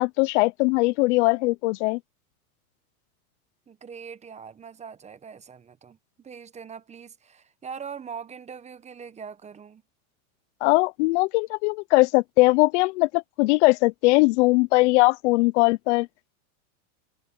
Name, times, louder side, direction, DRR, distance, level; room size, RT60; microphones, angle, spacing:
voice 1, 0.0-2.0 10.6-16.1, left 24 dB, 55° left, 0.7 m, -20 dB
voice 2, 3.7-9.8, right 6 dB, 15° right, 1.0 m, -42 dB
supercardioid pair, 130°, 43 cm